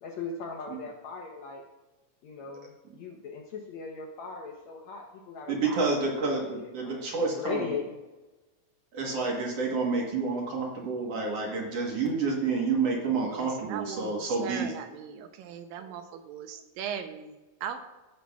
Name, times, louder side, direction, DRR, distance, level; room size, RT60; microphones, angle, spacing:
voice 1, 0.0-1.6 2.2-5.7 6.6-8.0, left 5 dB, 75° left, 0 dB, 1.7 m, -38 dB
voice 2, 5.5-7.7 8.9-14.7, right 4 dB, 60° right, -1 dB, 1.9 m, -29 dB
voice 3, 13.2-17.8, right 8 dB, 85° right, 7 dB, 2.3 m, -39 dB
16.5 x 6.4 x 2.3 m, 1.1 s
omnidirectional pair, 4.0 m